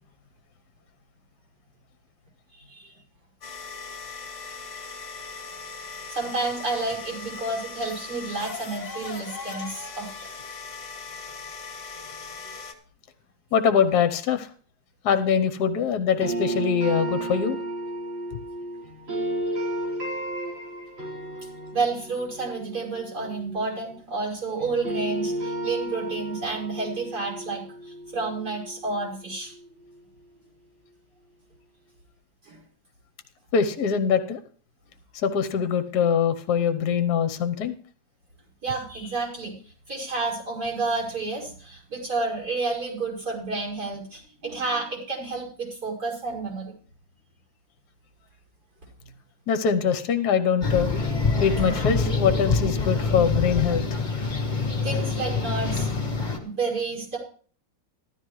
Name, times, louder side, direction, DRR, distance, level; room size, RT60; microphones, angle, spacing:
voice 1, 2.6-2.9 5.9-10.3 21.7-29.5 32.4-32.6 38.6-39.5 39.9-46.7 53.1-53.5 54.8-55.9 56.4-57.2, right 3 dB, 55° right, -3 dB, 6.0 m, -30 dB
sound 1, 3.4-12.7, left 4 dB, 40° left, 1.7 m, -39 dB
voice 2, 13.5-14.5 15.0-17.6 33.5-34.4 35.1-37.7 49.5-50.9 51.4-53.8, left 7 dB, 60° left, 9 dB, 1.4 m, -23 dB
sound 2, 16.2-24.3 24.6-29.5, right 1 dB, 85° right, 5.7 m, -33 dB
sound 3, 50.6-56.4, left 4 dB, 25° left, 1.8 m, -25 dB
14.5 x 12.5 x 3.2 m, 0.43 s
omnidirectional pair, 2.0 m